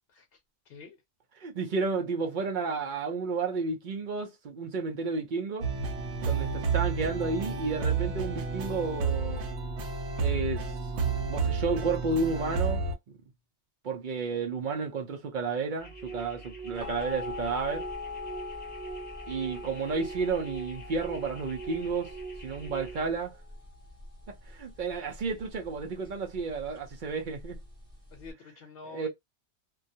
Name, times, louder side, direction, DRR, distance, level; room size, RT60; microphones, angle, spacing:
voice 1, 0.1-0.4 0.6-1.0 28.1-29.1, left 4 dB, 65° left, 0.8 m, -47 dB
voice 2, 1.4-5.7 6.3-9.4 10.2-10.8 11.3-12.8 13.8-17.9 19.3-22.1 22.4-23.4 24.5-27.6 28.9-29.1, right 4 dB, 55° right, 0.6 m, -32 dB
sound 1, 5.6-12.9, right 4 dB, 80° right, 0.9 m, -30 dB
sound 2, 15.8-23.0, right 4 dB, 10° left, 0.7 m, -42 dB
sound 3, 16.8-28.3, left 4 dB, 35° right, 0.9 m, -43 dB
2.3 x 2.2 x 2.6 m
omnidirectional pair, 1.1 m